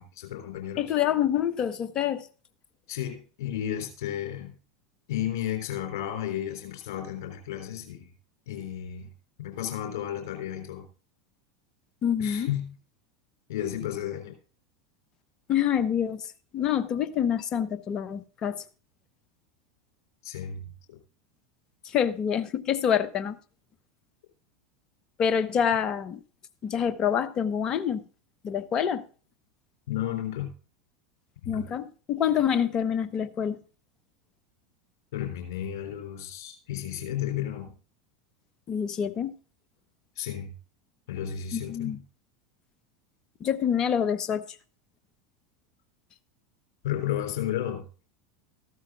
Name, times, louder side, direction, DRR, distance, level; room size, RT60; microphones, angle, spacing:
voice 1, 0.0-0.8 2.9-4.5 5.1-8.1 8.5-9.1 9.4-10.9 12.2-12.7 13.5-14.3 20.2-21.0 29.9-30.5 31.4-31.7 35.1-37.7 40.2-40.5 41.1-42.0 46.8-47.9, left 11 dB, 60° left, 3.7 m, -33 dB
voice 2, 0.8-2.3 12.0-12.5 15.5-16.3 16.5-18.6 21.9-23.4 25.2-26.2 26.6-28.0 28.4-29.0 31.5-33.6 38.7-39.3 41.5-42.0 43.4-44.4, left 8 dB, 35° left, 1.1 m, -26 dB
14.5 x 12.5 x 2.4 m
figure-of-eight pair, 80°, 2 cm